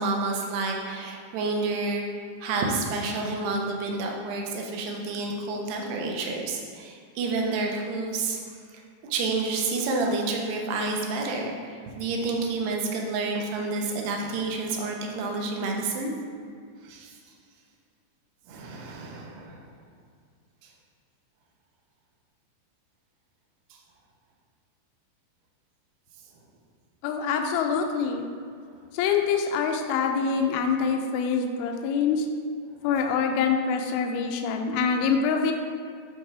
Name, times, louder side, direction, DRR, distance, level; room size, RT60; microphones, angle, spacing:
voice 1, 0.0-2.1 2.4-8.4 9.0-16.1 16.8-17.1 18.5-19.6, right 3 dB, 75° right, 0 dB, 2.7 m, -29 dB
voice 2, 27.0-28.2 28.9-32.3 32.8-35.5, left 6 dB, 85° left, 4 dB, 2.2 m, -25 dB
12.5 x 4.3 x 3.4 m, 2.2 s
omnidirectional pair, 5.1 m